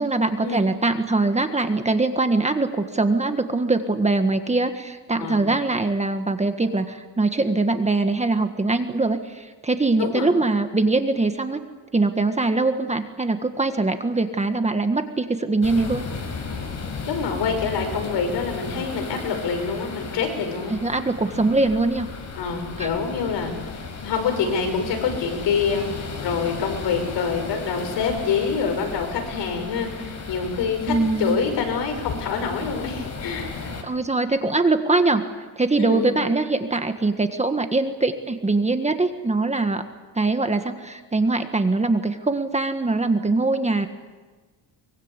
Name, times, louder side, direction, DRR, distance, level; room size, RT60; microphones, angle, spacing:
voice 1, 0.0-11.6 11.9-16.0 20.7-22.1 22.8-22.9 30.9-31.4 33.8-35.2 35.6-39.9 40.1-43.9, right 3 dB, 15° right, 8 dB, 1.5 m, -22 dB
voice 2, 10.0-10.3 17.1-20.8 21.3-21.4 22.4-33.7 35.8-36.2, left 5 dB, 75° left, 5 dB, 6.0 m, -26 dB
sound 1, 15.6-33.8, left 4 dB, 40° left, 5.4 m, -35 dB
24.0 x 23.0 x 8.3 m, 1.3 s
cardioid pair, 125°, 43 cm